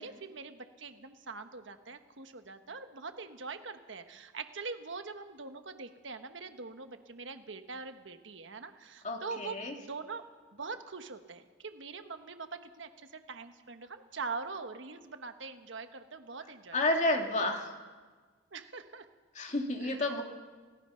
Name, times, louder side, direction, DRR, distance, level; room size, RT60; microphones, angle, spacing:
voice 1, 0.0-10.3 10.5-16.8 18.5-19.1 19.8-20.0, right 4 dB, 75° right, 8 dB, 1.3 m, -43 dB
voice 2, 9.0-9.7 16.7-17.7 19.3-20.2, left 2 dB, 40° left, 3 dB, 2.4 m, -30 dB
30.0 x 18.0 x 5.8 m, 1.4 s
head